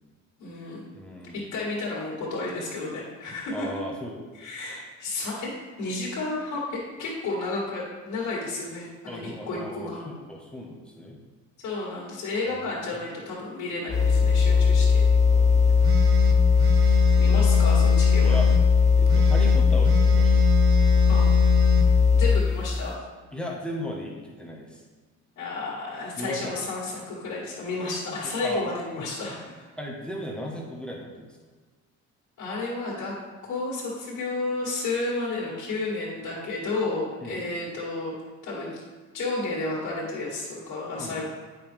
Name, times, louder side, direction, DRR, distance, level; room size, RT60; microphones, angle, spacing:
voice 1, 0.4-0.9 1.3-3.7 4.3-5.5 5.8-10.1 11.6-15.0 17.2-18.4 21.1-21.3 22.1-22.9 25.4-29.7 32.4-33.1 33.4-38.1 38.4-38.8 39.1-41.2, left 3 dB, 70° left, -7 dB, 2.3 m, -32 dB
voice 2, 0.9-1.4 3.5-4.2 9.1-11.2 12.7-12.9 14.4-15.0 15.3-15.8 16.8-17.0 18.2-18.5 19.0-20.4 20.9-21.3 23.3-24.8 26.2-26.5 28.2-28.6 29.8-31.4 37.2-37.4 40.9-41.2, equal, 5° left, -1 dB, 1.3 m, -37 dB
sound 1, 13.9-22.6, left 5 dB, 25° left, 0.5 m, -18 dB
sound 2, 15.8-18.6 19.1-21.9, equal, 65° right, 0.8 m, -30 dB
8.8 x 5.5 x 3.5 m, 1.4 s
cardioid pair, 90°, 30 cm